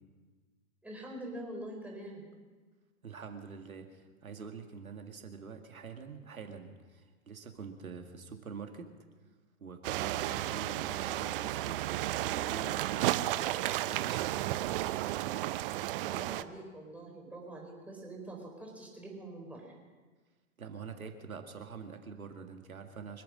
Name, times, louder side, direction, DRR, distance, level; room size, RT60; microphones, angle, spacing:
voice 1, 0.8-2.2 16.0-19.7, right 1 dB, 5° right, -2 dB, 4.6 m, -45 dB
voice 2, 3.0-8.9 9.6-11.8 12.3-14.4 20.6-23.2, right 5 dB, 85° right, 5 dB, 2.0 m, -45 dB
sound 1, 9.8-16.4, right 15 dB, 40° right, 0.7 m, -33 dB
25.5 x 8.8 x 6.4 m, 1.4 s
hypercardioid pair, 115°, 41 cm